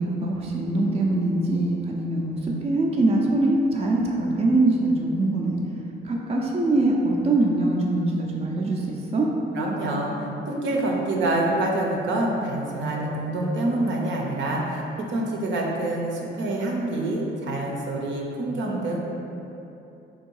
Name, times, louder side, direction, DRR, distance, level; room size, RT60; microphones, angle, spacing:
voice 1, 0.0-5.6 6.0-9.3, right 2 dB, 30° right, -2 dB, 0.5 m, -23 dB
voice 2, 9.5-10.1 10.5-19.0, right 2 dB, 70° right, -1 dB, 0.7 m, -26 dB
3.7 x 2.7 x 4.6 m, 2.9 s
cardioid pair, 90°, 20 cm